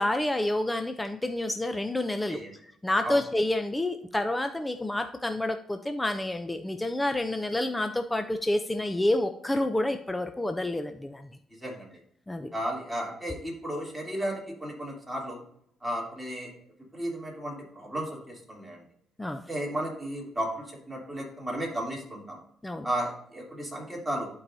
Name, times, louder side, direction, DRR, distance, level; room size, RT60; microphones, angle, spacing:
voice 1, 0.0-2.4 2.8-11.3 12.3-12.5 19.2-19.4 22.6-22.9, left 1 dB, 10° left, 8 dB, 0.5 m, -28 dB
voice 2, 12.5-15.4 15.8-16.5 16.9-18.8 19.5-22.4 22.8-24.3, right 1 dB, 5° right, -3 dB, 3.1 m, -34 dB
11.5 x 4.7 x 2.7 m, 0.68 s
cardioid pair, 90°, 0 cm